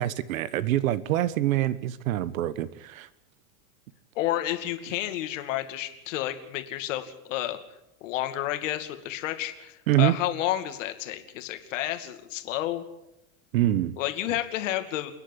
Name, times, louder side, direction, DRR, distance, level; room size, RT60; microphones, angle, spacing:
voice 1, 0.0-3.1 9.9-10.1 13.5-13.9, right 14 dB, 75° right, 16 dB, 1.2 m, -25 dB
voice 2, 4.2-7.6 8.0-12.8 14.0-15.2, left 13 dB, 60° left, 8 dB, 2.5 m, -30 dB
29.0 x 10.0 x 9.9 m, 0.91 s
supercardioid pair, 180°, 42 cm